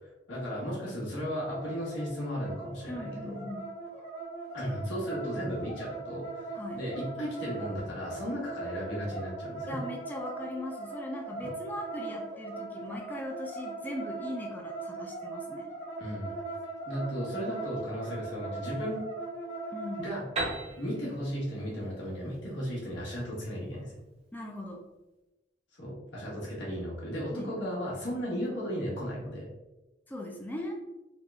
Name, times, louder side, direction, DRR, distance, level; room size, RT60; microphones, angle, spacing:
voice 1, 0.0-3.4 4.5-6.5 6.7-9.8 11.4-11.5 16.0-16.3 16.8-19.0 20.0-20.2 20.8-23.9 25.7-29.5, equal, 85° left, -5 dB, 1.4 m, -35 dB
sound 1, 1.4-20.1, right 3 dB, 40° left, 1.1 m, -40 dB
voice 2, 2.9-3.7 6.5-6.8 9.7-15.7 19.7-20.1 24.3-24.8 27.3-27.7 30.1-30.8, left 1 dB, 10° left, 0 dB, 0.3 m, -39 dB
Piano, 20.4-24.0, right 2 dB, 35° right, 0.8 m, -38 dB
3.4 x 2.4 x 3.3 m, 1.0 s
head